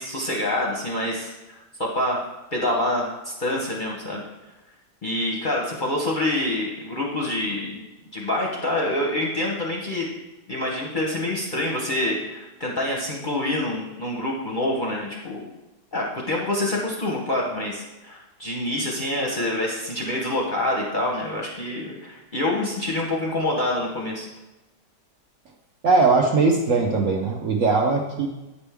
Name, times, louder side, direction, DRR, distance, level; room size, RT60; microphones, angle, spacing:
voice 1, 0.0-2.2 2.5-4.2 5.0-7.8 8.1-10.1 10.5-15.4 15.9-24.3, left 1 dB, 40° left, -2 dB, 0.8 m, -26 dB
voice 2, 25.8-28.3, right 4 dB, 60° right, 1 dB, 0.9 m, -20 dB
8.3 x 5.2 x 3.5 m, 1.0 s
omnidirectional pair, 1.8 m